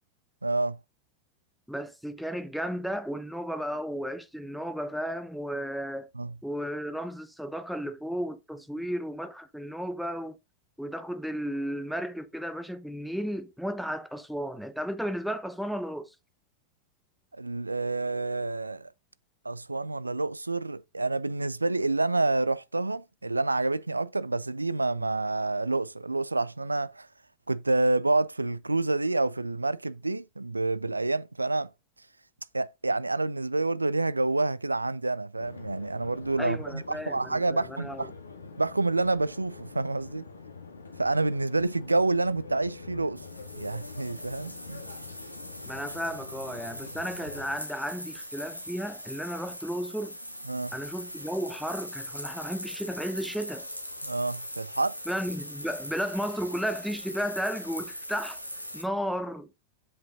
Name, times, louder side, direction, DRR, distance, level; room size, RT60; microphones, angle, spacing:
voice 1, 0.4-0.8 6.1-6.3 17.3-18.9 19.4-27.1 27.5-31.7 32.5-38.1 38.6-40.3 41.0-43.2 43.5-44.8 50.5-50.7 54.0-55.0, right 2 dB, 80° right, 0.3 m, -28 dB
voice 2, 1.7-6.1 6.4-10.4 10.8-16.1 36.4-38.1 45.7-50.2 50.7-53.7 55.1-58.4 58.7-59.5, equal, ahead, 0.9 m, -34 dB
sound 1, 35.4-47.6, left 4 dB, 75° left, 1.6 m, -45 dB
sound 2, 43.2-58.8, equal, 90° left, 1.3 m, -41 dB
7.7 x 5.8 x 3.8 m
figure-of-eight pair, 90°, 0 cm